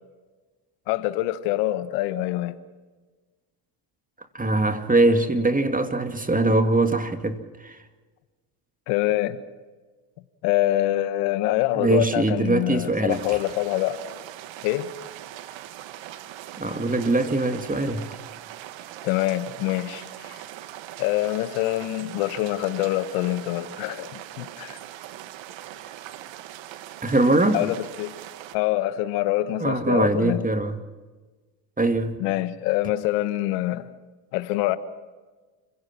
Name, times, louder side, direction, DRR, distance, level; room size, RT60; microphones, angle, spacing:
voice 1, 0.9-2.6 8.9-9.4 10.4-14.0 14.6-14.9 19.0-20.4 21.0-24.8 27.5-28.1 28.5-30.5 32.2-33.9 34.3-34.8, left 15 dB, 85° left, 1.3 m, -25 dB
voice 2, 4.3-7.8 11.7-13.2 16.6-18.0 27.0-27.7 29.6-30.8 31.8-32.2, right 2 dB, 15° right, 2.4 m, -22 dB
sound 1, 13.1-28.6, right 13 dB, 70° right, 1.5 m, -41 dB
29.5 x 17.0 x 6.0 m
supercardioid pair, 75°, 47 cm